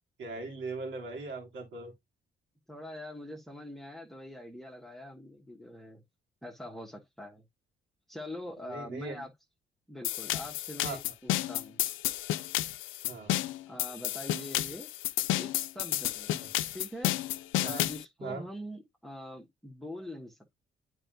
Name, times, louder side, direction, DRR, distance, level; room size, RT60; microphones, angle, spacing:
voice 1, 0.2-1.9 8.7-9.3 10.8-11.0 13.1-13.3 16.3-16.5 17.6-17.8 18.2-18.4, right 3 dB, 75° right, 2.9 m, -39 dB
voice 2, 2.7-6.0 6.4-7.4 8.1-9.3 9.9-11.8 13.7-14.9 15.4-16.3 16.7-20.4, left 1 dB, ahead, 1.3 m, -44 dB
sound 1, 10.0-18.0, left 14 dB, 85° left, 0.5 m, -31 dB
8.8 x 4.7 x 2.5 m
cardioid pair, 90°, 20 cm